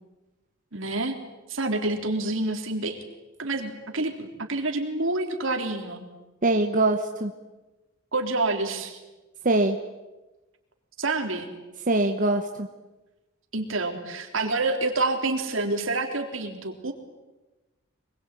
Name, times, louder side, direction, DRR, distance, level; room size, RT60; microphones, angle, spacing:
voice 1, 0.7-1.2 1.5-3.0 3.4-6.0 8.1-9.0 11.0-11.5 13.5-16.9, right 2 dB, 75° right, 3 dB, 3.8 m, -28 dB
voice 2, 6.4-7.3 9.4-9.8 11.9-12.7, right 2 dB, 40° right, 4 dB, 1.2 m, -23 dB
25.0 x 22.0 x 9.3 m, 1.1 s
head